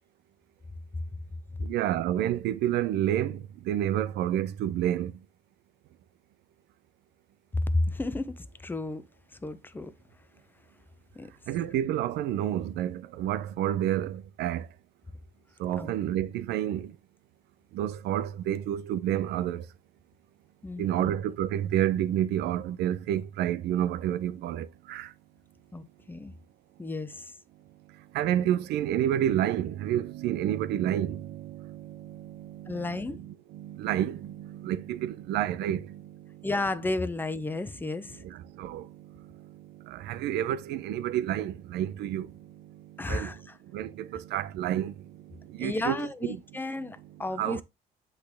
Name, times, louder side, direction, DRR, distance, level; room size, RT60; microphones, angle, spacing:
voice 1, 1.6-5.2 11.5-14.7 15.6-16.9 17.7-19.6 20.8-25.1 28.1-36.5 38.1-47.6, right 11 dB, 80° right, 0.6 m, -30 dB
voice 2, 7.5-9.0 9.4-9.9 11.1-11.3 15.8-15.9 20.6-21.1 25.7-26.3 26.8-27.3 32.7-33.2 36.4-38.2 43.0-43.6 45.6-47.6, left 2 dB, 10° left, 0.6 m, -32 dB
8.2 x 3.3 x 3.4 m
cardioid pair, 110°, 17 cm